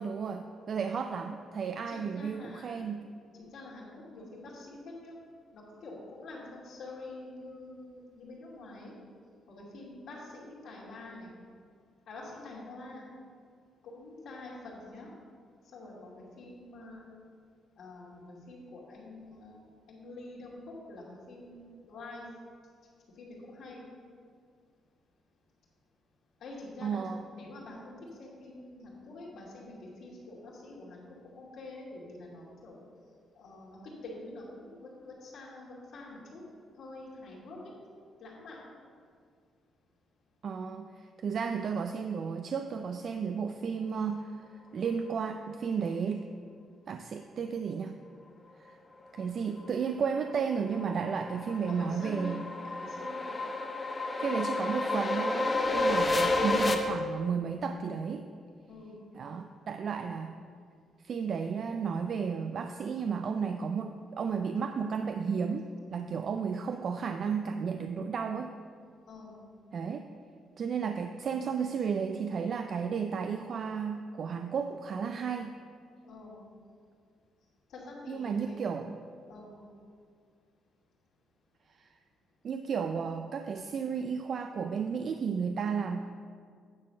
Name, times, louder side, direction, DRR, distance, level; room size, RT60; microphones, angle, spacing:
voice 1, 0.0-3.1 26.8-27.2 40.4-46.3 46.9-48.0 48.6-48.8 49.1-52.4 54.2-58.3 59.2-60.3 61.0-68.5 69.7-70.1 70.6-75.6 78.1-79.0 81.7-81.9 82.4-86.1, right 6 dB, 55° right, 7 dB, 0.4 m, -33 dB
voice 2, 1.9-2.8 3.4-5.1 5.5-8.9 9.5-11.3 12.1-13.1 13.8-15.1 15.7-17.1 17.8-19.6 19.9-20.6 20.9-22.3 23.1-23.8 26.4-31.0 31.3-32.8 33.3-36.4 36.8-37.6 38.2-38.7 51.6-52.4 52.6-53.3 58.7-59.0 69.1-69.4 76.0-76.4 77.7-78.6 79.3-79.6, left 2 dB, 75° left, -5 dB, 2.5 m, -46 dB
sound 1, 50.2-56.7, left 2 dB, 25° left, 0.9 m, -30 dB
9.6 x 4.2 x 6.5 m, 2.1 s
cardioid pair, 90°, 0 cm